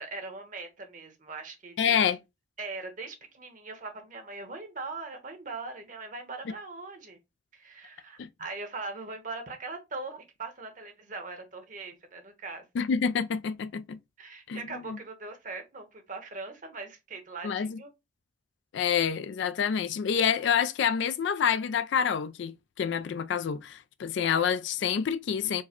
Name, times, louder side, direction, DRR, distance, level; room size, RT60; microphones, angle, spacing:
voice 1, 0.0-2.0 2.6-7.2 7.5-12.6 14.2-17.9, right 3 dB, 40° right, 1.0 m, -40 dB
voice 2, 1.8-2.2 8.2-8.3 12.7-14.0 14.5-14.6 14.9-15.0 17.4-17.8 18.7-25.6, left 7 dB, 65° left, 0.3 m, -27 dB
4.6 x 2.1 x 4.2 m
head